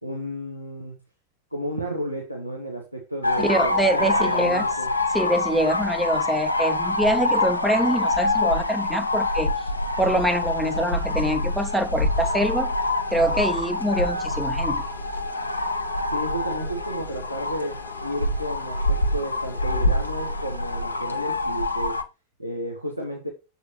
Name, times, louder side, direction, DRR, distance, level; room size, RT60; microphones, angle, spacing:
voice 1, 0.0-0.9 1.5-4.9 16.1-22.0 22.4-23.3, equal, 90° right, 1 dB, 1.0 m, -32 dB
sound 1, 3.2-22.0, left 2 dB, 85° left, 0.6 m, -25 dB
voice 2, 3.4-4.7 5.1-9.5 10.0-12.7 13.1-14.8, right 1 dB, ahead, 8 dB, 0.5 m, -24 dB
sound 2, 10.2-21.3, left 8 dB, 40° left, 0.7 m, -44 dB
6.5 x 5.3 x 3.0 m, 0.28 s
figure-of-eight pair, 90°, 0 cm